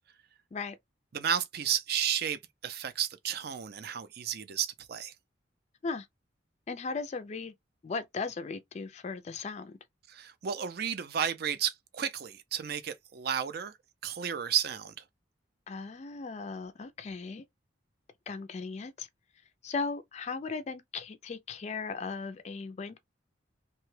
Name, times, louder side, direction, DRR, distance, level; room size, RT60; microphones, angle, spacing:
voice 1, 1.1-5.1 10.1-13.7 14.0-14.9, right 8 dB, 55° right, 0.4 m, -32 dB
voice 2, 6.7-7.5 7.8-9.8 15.7-17.4 18.3-19.1 19.6-23.0, left 4 dB, 35° left, 0.3 m, -37 dB
2.8 x 2.2 x 3.1 m
head